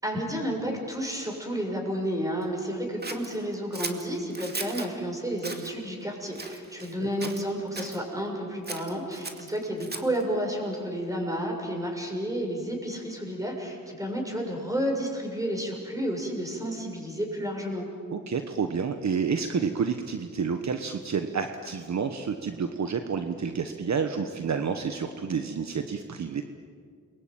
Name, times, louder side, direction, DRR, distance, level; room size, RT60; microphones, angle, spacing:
voice 1, 0.0-17.9, equal, 10° right, 1 dB, 6.5 m, -31 dB
Scissors, 3.0-4.9 5.4-5.7 6.3-6.9 7.2-8.0 8.6-10.2, right 3 dB, 30° right, 2.4 m, -38 dB
voice 2, 18.1-26.4, right 6 dB, 55° right, 7 dB, 1.3 m, -29 dB
29.5 x 22.5 x 8.9 m, 2.2 s
wide cardioid pair, 115°, 34 cm